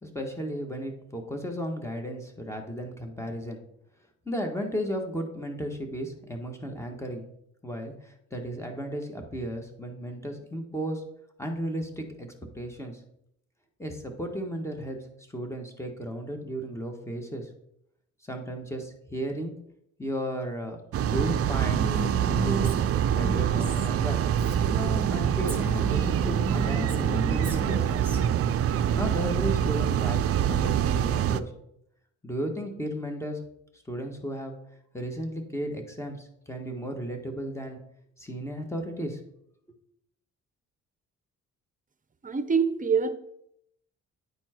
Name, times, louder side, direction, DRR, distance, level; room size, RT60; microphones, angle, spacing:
voice 1, 0.0-3.6 4.2-7.2 7.6-11.0 11.4-12.3 12.5-13.0 13.8-15.0 15.3-17.5 18.2-19.5 20.0-21.8 22.2-22.9 23.2-24.3 25.1-28.3 28.9-31.5 32.2-33.4 33.9-34.5 34.9-37.8 38.2-39.2, equal, 10° left, 3 dB, 1.5 m, -34 dB
sound 1, 20.9-31.4, right 9 dB, 50° right, 0.5 m, -25 dB
Female speech woman speaking, 21.7-25.2 25.5-28.2, equal, 5° right, 1.6 m, -36 dB
voice 2, 42.2-43.1, right 6 dB, 25° right, 10 dB, 0.8 m, -24 dB
9.6 x 4.4 x 4.5 m, 0.75 s
cardioid pair, 90°, 30 cm